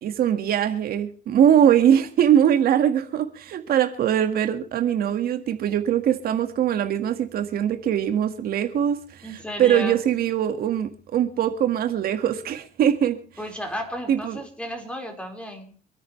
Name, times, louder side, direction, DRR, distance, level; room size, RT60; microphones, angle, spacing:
voice 1, 0.0-13.2 14.1-14.4, right 9 dB, 65° right, 7 dB, 1.8 m, -22 dB
voice 2, 9.2-10.0 13.4-15.8, equal, 5° left, 3 dB, 4.7 m, -33 dB
27.5 x 9.5 x 3.2 m, 0.41 s
cardioid pair, 110°, 17 cm